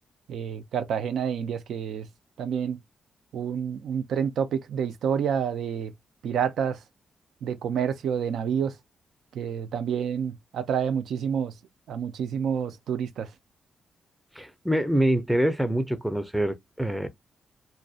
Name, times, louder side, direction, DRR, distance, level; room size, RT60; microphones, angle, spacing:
voice 1, 0.3-2.1 2.4-2.8 3.3-5.9 6.2-6.8 7.4-8.8 9.3-11.5 11.9-13.3, right 7 dB, 85° right, 0.4 m, -28 dB
voice 2, 14.4-17.1, right 1 dB, 5° right, 0.4 m, -25 dB
2.6 x 2.1 x 2.3 m
cardioid pair, 95°, 0 cm